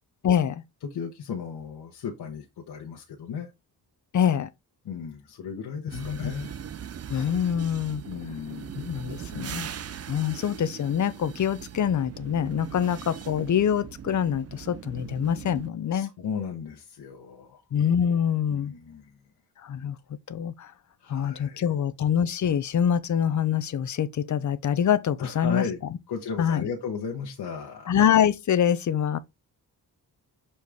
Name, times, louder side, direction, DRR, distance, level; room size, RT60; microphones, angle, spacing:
voice 1, 0.2-0.6 4.1-4.5 5.9-6.3 7.1-8.0 8.7-9.7 10.1-16.1 17.7-18.7 19.6-20.0 20.3-20.7 21.1-25.6 26.4-26.7 27.9-29.2, left 8 dB, 50° left, 0.7 m, -25 dB
voice 2, 0.8-3.5 4.8-6.5 8.1-8.7 12.8-13.0 15.9-17.6 18.5-19.1 21.0-21.6 25.2-25.8 26.1-27.9, left 6 dB, 85° left, 1.2 m, -35 dB
sound 1, 5.9-15.7, right 8 dB, 40° right, 0.6 m, -40 dB
6.4 x 4.2 x 3.5 m
wide cardioid pair, 125°, 39 cm